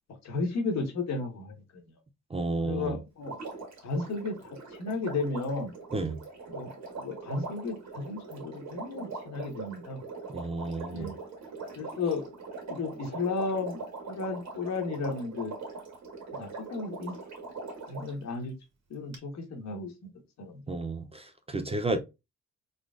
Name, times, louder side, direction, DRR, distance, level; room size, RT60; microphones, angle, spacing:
voice 1, 0.2-1.5 2.6-3.3 3.8-5.7 6.5-6.7 7.0-10.0 10.9-11.2 11.8-12.2 12.7-13.8 14.1-15.5 16.3-17.1 17.9-18.5 18.9-19.9 20.4-20.6, left 3 dB, 60° left, 1.4 m, -33 dB
voice 2, 2.3-3.0 5.9-6.2 10.3-11.1 20.7-22.0, right 2 dB, 20° right, 0.5 m, -32 dB
Water, 3.2-18.2 19.1-19.2, right 3 dB, 60° right, 1.7 m, -42 dB
3.9 x 3.3 x 2.4 m
cardioid pair, 90°, 30 cm